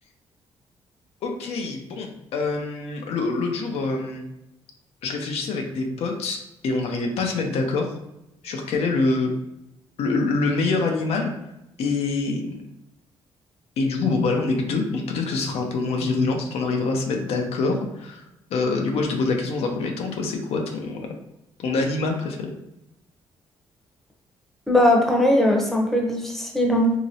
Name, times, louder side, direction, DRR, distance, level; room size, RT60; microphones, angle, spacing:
voice 1, 1.2-4.2 5.0-7.9 8.4-9.3 10.0-11.3 11.8-12.6 13.8-18.2 18.5-21.1 21.6-22.5, left 3 dB, 80° left, 2 dB, 0.6 m, -25 dB
voice 2, 24.7-26.9, left 1 dB, 5° left, 0 dB, 0.8 m, -19 dB
2.9 x 2.8 x 2.7 m, 0.87 s
cardioid pair, 80°, 10 cm